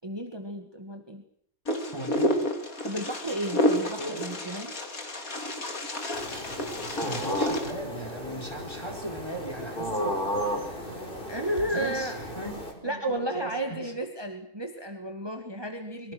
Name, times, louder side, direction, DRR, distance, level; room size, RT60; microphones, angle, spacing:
voice 1, 0.0-1.2 2.8-4.8 11.3-12.2 12.8-16.1, right 1 dB, 15° right, 4 dB, 2.1 m, -33 dB
Wind, 1.7-7.7, left 1 dB, 65° left, 3.6 m, -30 dB
voice 2, 1.9-2.3 4.0-4.2 7.0-11.1 11.7-13.9, right 1 dB, 15° left, 2 dB, 4.8 m, -38 dB
sound 1, 6.1-12.7, equal, 35° left, 4.8 m, -34 dB
27.0 x 23.5 x 6.4 m, 0.70 s
omnidirectional pair, 1.6 m